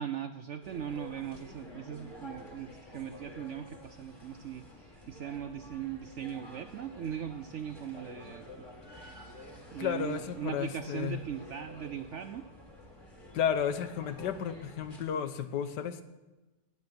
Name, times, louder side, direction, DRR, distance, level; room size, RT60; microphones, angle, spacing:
voice 1, 0.0-8.6 9.7-12.5, right 9 dB, 70° right, 10 dB, 0.7 m, -39 dB
sound 1, 0.6-15.0, left 1 dB, 15° left, 2.1 m, -50 dB
voice 2, 9.8-11.2 13.3-16.0, left 8 dB, 90° left, 11 dB, 1.5 m, -33 dB
16.0 x 9.4 x 6.0 m, 1.1 s
omnidirectional pair, 1.8 m